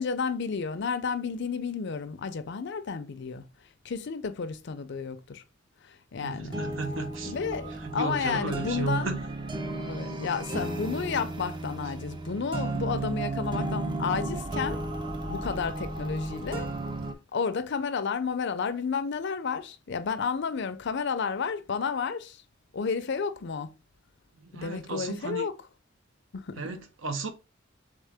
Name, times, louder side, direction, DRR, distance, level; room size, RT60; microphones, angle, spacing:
voice 1, 0.0-3.5 3.8-5.4 5.8-6.6 7.2-9.1 9.8-14.8 15.3-16.7 17.3-22.4 22.7-23.7 24.5-25.5 26.3-26.6, left 5 dB, 60° left, 0.5 m, -31 dB
voice 2, 6.2-7.3 7.8-9.3 24.4-25.5 26.6-27.3, right 3 dB, 65° right, 0.7 m, -34 dB
sound 1, 6.4-17.1, right 2 dB, 25° right, 0.5 m, -34 dB
3.7 x 3.6 x 3.4 m
head